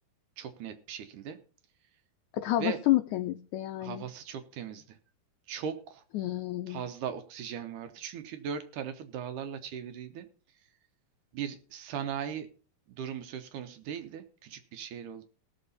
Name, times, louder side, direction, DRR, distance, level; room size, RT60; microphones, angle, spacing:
voice 1, 0.4-1.4 2.6-2.8 3.8-5.0 5.5-6.0 6.7-10.3 10.6-10.7 11.3-12.5 12.9-15.2, right 8 dB, 70° right, 9 dB, 2.1 m, -38 dB
voice 2, 2.3-4.0 6.1-6.8, left 14 dB, 85° left, 9 dB, 1.7 m, -29 dB
19.0 x 6.7 x 4.0 m, 0.38 s
omnidirectional pair, 4.2 m